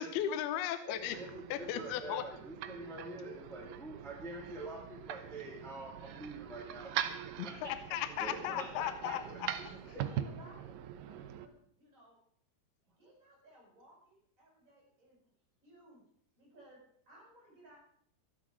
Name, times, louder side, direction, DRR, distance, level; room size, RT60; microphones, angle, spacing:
voice 1, 0.0-1.2 1.5-2.2 7.4-9.2, left 11 dB, 80° left, 11 dB, 2.7 m, -36 dB
voice 2, 0.9-7.7 8.2-9.4 9.9-10.0, right 2 dB, ahead, -1 dB, 2.0 m, -46 dB
sound 1, 0.9-11.5, right 10 dB, 75° right, 2.2 m, -43 dB
voice 3, 9.0-12.2 13.0-15.3 15.6-16.0 16.4-17.8, right 1 dB, 20° right, -3 dB, 7.8 m, -59 dB
12.5 x 12.0 x 6.2 m, 0.63 s
omnidirectional pair, 4.5 m